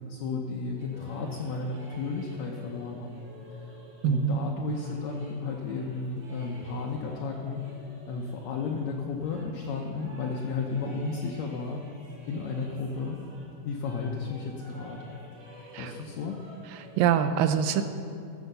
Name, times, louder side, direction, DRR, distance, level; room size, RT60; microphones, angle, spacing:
voice 1, 0.1-3.1 3.5-3.7 4.0-7.6 8.1-11.8 12.3-13.2 13.6-15.2 15.8-16.4, left 4 dB, 75° left, 0 dB, 1.6 m, -33 dB
sound 1, 0.8-13.6 13.8-17.2, equal, 25° right, 2.8 m, -50 dB
voice 2, 4.0-4.4 15.7-15.9 17.0-17.8, right 8 dB, 80° right, 9 dB, 2.2 m, -24 dB
14.0 x 7.4 x 6.7 m, 2.5 s
omnidirectional pair, 4.1 m